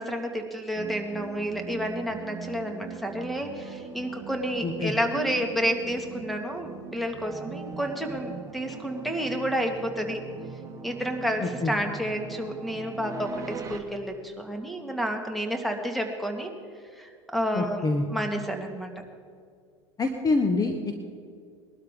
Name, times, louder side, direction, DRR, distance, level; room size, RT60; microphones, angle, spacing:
voice 1, 0.0-10.2 10.8-16.5 17.0-17.8 18.1-18.9, equal, ahead, 4 dB, 2.0 m, -30 dB
sound 1, 0.7-13.8, right 5 dB, 20° right, 1.7 m, -41 dB
voice 2, 4.6-4.9 11.4-11.7 17.5-18.1 20.0-20.7, left 3 dB, 25° left, 5 dB, 1.2 m, -26 dB
21.0 x 12.5 x 3.7 m, 2.2 s
hypercardioid pair, 85°, 16 cm